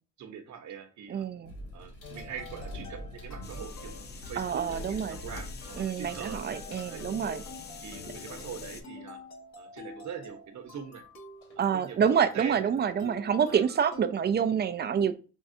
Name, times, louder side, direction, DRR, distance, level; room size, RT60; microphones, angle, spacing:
voice 1, 0.2-1.2 1.7-6.6 6.9-7.0 7.8-9.2 9.6-11.0 11.5-12.7 13.5-13.6, right 7 dB, 70° right, 5 dB, 0.9 m, -43 dB
voice 2, 1.1-1.5 4.4-5.2 5.8-7.4 11.6-15.1, right 7 dB, 35° right, 10 dB, 0.4 m, -27 dB
sound 1, 1.4-7.4 9.9-10.0 11.4-11.6 12.0-12.9, equal, 80° left, 1.5 m, -46 dB
sound 2, 2.0-14.1, left 3 dB, 65° left, 1.3 m, -48 dB
sound 3, 3.4-8.8, left 4 dB, 35° left, 0.5 m, -44 dB
5.3 x 2.3 x 2.6 m, 0.35 s
cardioid pair, 90°, 30 cm